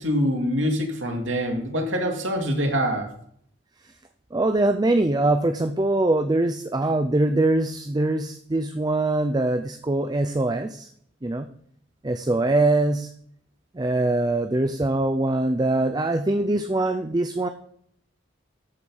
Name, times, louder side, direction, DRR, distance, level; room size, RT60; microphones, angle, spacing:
voice 1, 0.0-3.1, equal, 85° right, 2 dB, 2.2 m, -25 dB
voice 2, 4.3-10.9 11.2-11.5 12.0-13.1 13.7-17.5, right 2 dB, 20° right, 8 dB, 0.5 m, -23 dB
13.0 x 4.7 x 5.4 m, 0.65 s
head